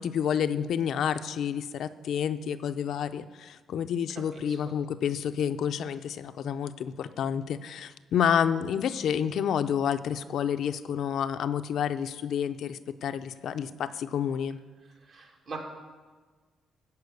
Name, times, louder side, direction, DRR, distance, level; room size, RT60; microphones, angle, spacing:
voice 1, 0.0-14.6, left 8 dB, 70° left, 11 dB, 0.5 m, -29 dB
voice 2, 4.3-4.8 14.8-15.6, right 4 dB, 60° right, 0 dB, 2.5 m, -43 dB
13.5 x 5.0 x 8.3 m, 1.4 s
cardioid pair, 90°, 0 cm